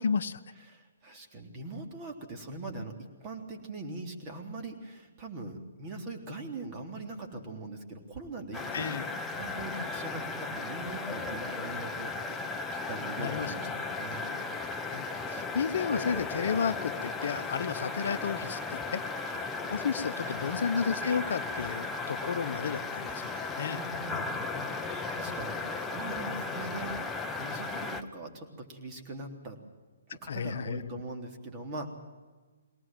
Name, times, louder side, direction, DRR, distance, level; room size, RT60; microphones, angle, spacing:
voice 1, 0.0-0.4 8.7-9.0 13.2-13.5 14.6-19.0 19.7-23.8 30.3-31.0, left 6 dB, 60° left, 13 dB, 1.0 m, -32 dB
voice 2, 0.6-14.3 19.2-19.5 20.0-20.6 23.6-29.6 30.1-31.9, right 2 dB, 30° right, 3 dB, 3.5 m, -42 dB
sound 1, 8.5-28.0, left 3 dB, 10° left, 1.1 m, -36 dB
22.5 x 18.5 x 7.6 m, 1.3 s
figure-of-eight pair, 135°, 0 cm